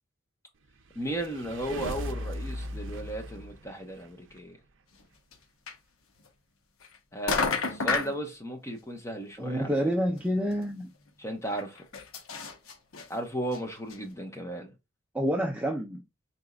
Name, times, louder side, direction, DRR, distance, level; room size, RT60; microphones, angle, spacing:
sound 1, 0.8-4.4, equal, 60° right, 0.6 m, -38 dB
voice 1, 0.9-4.6 7.1-9.7 11.2-11.8 13.1-14.7, right 1 dB, 15° left, 0.9 m, -35 dB
sound 2, 5.3-5.4 5.7-5.8 6.8-7.0 7.3-8.2 9.7-9.8 10.2-10.3 10.5-10.6 11.6-13.1 13.5-13.6 13.9-14.0, left 4 dB, 75° left, 0.7 m, -30 dB
voice 2, 9.4-10.9 15.1-16.0, equal, 5° right, 0.5 m, -28 dB
4.1 x 3.6 x 2.3 m
head